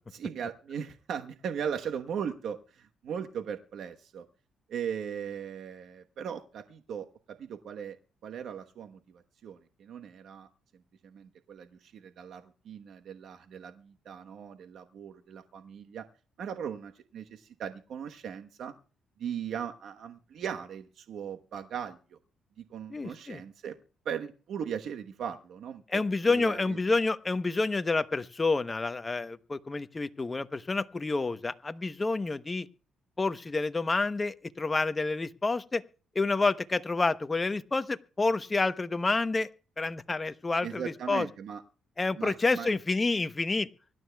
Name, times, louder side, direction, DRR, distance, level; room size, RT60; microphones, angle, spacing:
voice 1, 0.1-4.2 4.7-8.0 8.2-10.5 11.0-16.0 16.4-18.7 19.2-22.0 22.6-23.8 24.0-26.0 26.3-26.8 40.6-41.6 42.2-42.7, right 8 dB, 70° right, 1.1 m, -38 dB
voice 2, 22.9-23.4 25.9-32.7 33.2-35.8 36.1-39.5 39.8-41.3 42.0-43.7, left 3 dB, 25° left, 0.9 m, -29 dB
24.5 x 12.5 x 2.3 m
cardioid pair, 90°, 0 cm